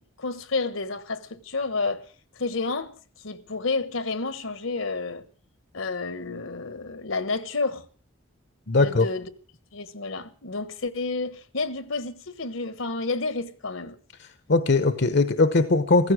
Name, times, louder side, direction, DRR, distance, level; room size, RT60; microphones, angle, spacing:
voice 1, 0.2-2.0 2.4-2.9 3.2-5.2 5.7-7.8 8.8-9.2 9.7-14.0, left 3 dB, 70° left, 1.3 m, -30 dB
voice 2, 8.7-9.1 14.2-16.1, left 3 dB, 55° left, 0.9 m, -20 dB
15.5 x 14.5 x 6.3 m
head